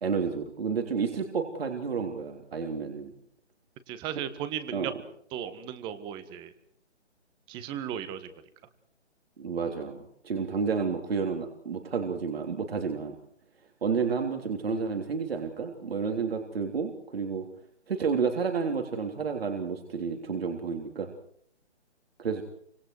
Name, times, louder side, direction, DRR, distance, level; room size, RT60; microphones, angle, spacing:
voice 1, 0.0-3.1 4.7-4.9 9.4-13.2 13.8-17.5 17.9-21.1 22.2-22.4, right 5 dB, 55° right, 3 dB, 3.5 m, -30 dB
voice 2, 3.9-4.9 5.3-6.5 7.5-8.3, right 9 dB, 15° right, 12 dB, 1.5 m, -36 dB
29.0 x 25.5 x 4.8 m, 0.65 s
figure-of-eight pair, 145°, 35 cm